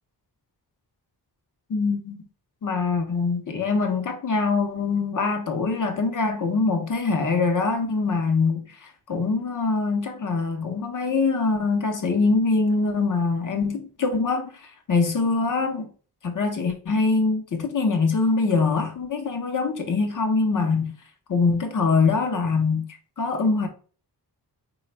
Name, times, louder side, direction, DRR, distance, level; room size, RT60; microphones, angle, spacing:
voice 1, 1.7-2.2 2.6-15.9 16.2-20.9 21.3-22.9 23.2-23.7, left 4 dB, 50° left, 0.8 m, -23 dB
4.1 x 2.4 x 4.5 m
wide cardioid pair, 170°, 40 cm